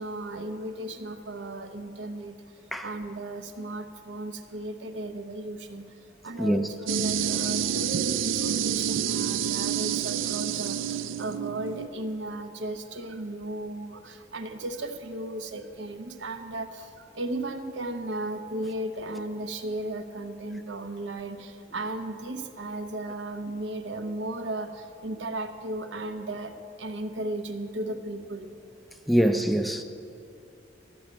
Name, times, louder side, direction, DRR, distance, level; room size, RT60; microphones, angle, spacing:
voice 1, 0.0-2.3 2.8-28.5, right 1 dB, 65° right, 0.8 m, -35 dB
voice 2, 6.4-6.7 29.1-29.8, equal, ahead, 0.3 m, -23 dB
sound 1, 6.9-11.9, right 8 dB, 85° right, 0.4 m, -28 dB
12.0 x 6.3 x 8.4 m
head